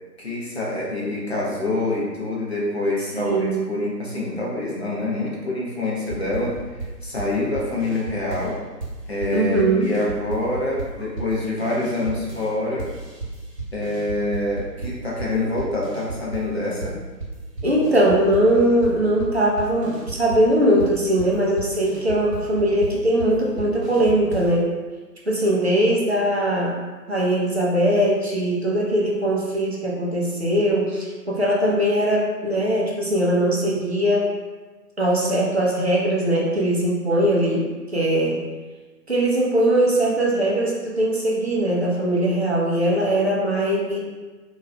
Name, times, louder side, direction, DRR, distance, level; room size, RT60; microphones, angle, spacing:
voice 1, 0.2-6.6 7.0-8.6 9.1-12.9 13.7-17.0, left 2 dB, 40° left, -5 dB, 0.6 m, -26 dB
voice 2, 3.0-3.7 9.3-9.9 17.6-24.7 25.3-26.8 27.1-34.3 35.0-37.6 37.9-38.4 39.1-44.0, right 1 dB, 40° right, -4 dB, 0.5 m, -20 dB
sound 1, 6.1-8.5 8.8-12.5 12.8-16.5 16.8-24.6, right 3 dB, 70° right, 1.0 m, -34 dB
3.8 x 2.5 x 2.2 m, 1.3 s
figure-of-eight pair, 150°, 50 cm